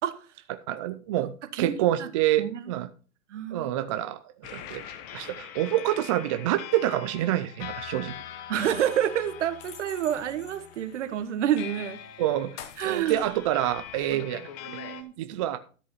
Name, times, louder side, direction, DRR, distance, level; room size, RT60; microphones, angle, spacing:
voice 1, 0.7-2.9 3.5-8.1 12.2-14.5 15.2-15.6, right 13 dB, 25° right, 0.5 m, -27 dB
voice 2, 1.5-2.1 2.4-2.7 3.3-3.7 8.5-12.0 12.8-13.2 14.7-15.4, right 10 dB, 55° right, 1.5 m, -29 dB
sound 1, 4.4-15.0, left 9 dB, 30° left, 1.1 m, -42 dB
13.0 x 5.4 x 5.6 m
hypercardioid pair, 130°, 42 cm